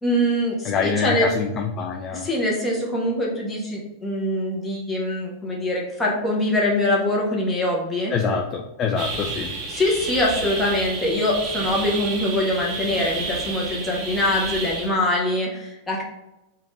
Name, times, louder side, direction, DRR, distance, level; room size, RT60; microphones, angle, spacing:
voice 1, 0.0-1.3 2.1-8.1 9.7-16.0, left 1 dB, 15° left, -3 dB, 0.9 m, -23 dB
voice 2, 0.6-2.3 8.1-9.5, left 5 dB, 30° left, 3 dB, 0.3 m, -25 dB
sound 1, 9.0-14.9, right 3 dB, 35° right, 0.6 m, -31 dB
3.1 x 2.4 x 3.2 m, 0.94 s
figure-of-eight pair, 90°, 0 cm